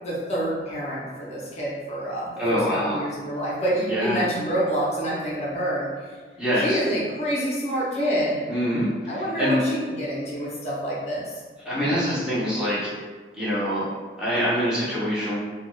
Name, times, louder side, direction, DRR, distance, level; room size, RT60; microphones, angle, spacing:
voice 1, 0.0-6.1 6.5-8.5 9.1-11.3, right 1 dB, 35° left, -6 dB, 0.6 m, -27 dB
voice 2, 2.4-3.0 3.9-4.3 6.4-6.8 8.5-9.6 11.6-12.9 13.3-13.9 14.2-15.4, equal, 5° right, -10 dB, 0.6 m, -24 dB
2.3 x 2.2 x 3.0 m, 1.5 s
head